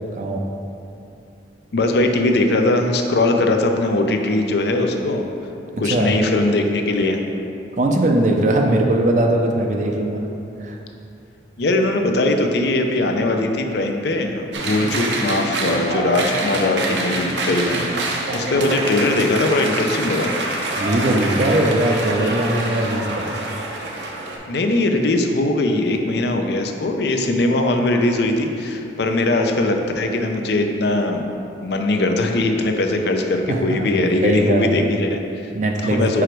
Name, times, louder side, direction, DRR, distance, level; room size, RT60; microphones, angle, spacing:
voice 1, 0.1-0.4 5.8-6.1 7.8-10.3 10.6-10.8 20.8-23.3 33.5-33.9 34.2-34.7 35.5-36.2, right 1 dB, 40° right, 2 dB, 0.5 m, -20 dB
voice 2, 1.7-5.2 5.8-7.2 11.6-20.3 24.5-35.5 35.8-36.2, left 2 dB, 60° left, 4 dB, 0.5 m, -20 dB
sound 1, 14.5-24.4, right 2 dB, 75° right, 0.8 m, -26 dB
5.0 x 4.8 x 4.5 m, 2.7 s
head